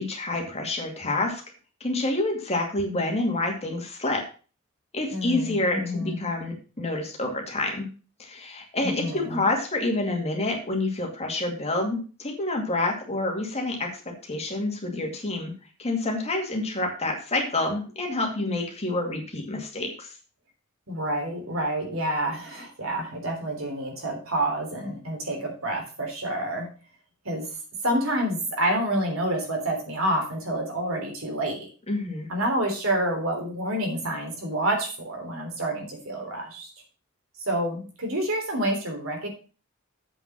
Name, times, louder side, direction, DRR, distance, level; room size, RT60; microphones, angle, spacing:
voice 1, 0.0-1.4 1.8-4.2 4.9-7.9 8.2-15.5 15.8-20.1 31.9-32.3, left 2 dB, 30° left, 1 dB, 2.3 m, -28 dB
voice 2, 5.1-6.2 8.8-9.4 20.9-26.7 27.3-27.5 27.8-31.7 32.3-36.7 37.4-39.3, right 1 dB, 70° right, 1 dB, 3.4 m, -28 dB
8.0 x 5.8 x 6.1 m, 0.36 s
head